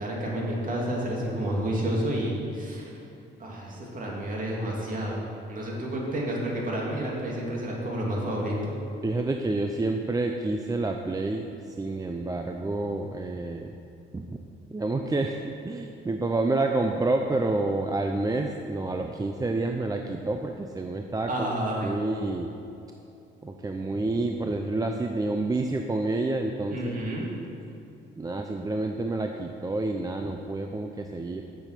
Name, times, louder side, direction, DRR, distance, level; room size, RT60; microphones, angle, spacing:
voice 1, 0.0-2.9 3.4-8.8 21.3-22.0 26.7-27.3, right 1 dB, 45° right, -3 dB, 2.6 m, -30 dB
voice 2, 9.0-13.7 14.1-14.4 14.7-21.5 21.8-22.5 23.4-26.9 28.2-31.4, right 2 dB, 20° right, 4 dB, 0.5 m, -29 dB
7.9 x 7.1 x 6.8 m, 2.7 s
cardioid pair, 90°, 20 cm